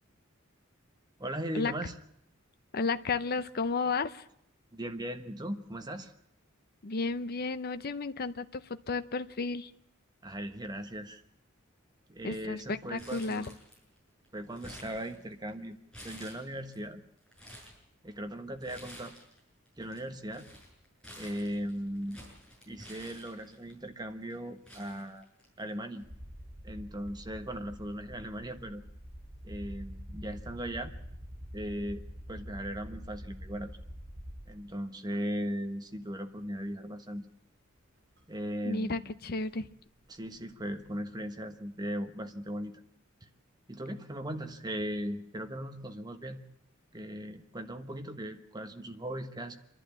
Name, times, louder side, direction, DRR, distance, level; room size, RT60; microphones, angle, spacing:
voice 1, 1.2-1.9 4.7-6.1 10.2-11.2 12.1-13.5 14.3-15.8 16.0-17.0 18.0-19.1 19.8-20.5 21.2-22.2 22.7-25.2 25.6-26.1 26.6-28.8 29.4-30.9 31.5-33.8 34.5-37.3 38.3-39.1 40.1-42.8 43.7-46.4 46.9-49.6, equal, 20° right, 6 dB, 1.3 m, -38 dB
voice 2, 2.7-4.2 6.8-9.7 12.2-13.4 38.6-39.7, left 4 dB, 50° left, 11 dB, 0.7 m, -33 dB
Crumpling crinkling, 13.0-14.0 14.2-15.5 15.9-16.8 17.2-17.8 18.6-19.4 19.7-23.7 24.3-24.4 24.7-25.7 26.0-26.1 27.1-27.3, equal, 5° left, 7.3 m, -50 dB
sound 1, 26.0-34.8 35.9-36.0 38.2-38.3 38.5-41.1, equal, 50° right, 7.0 m, -46 dB
27.5 x 11.5 x 8.6 m, 0.76 s
head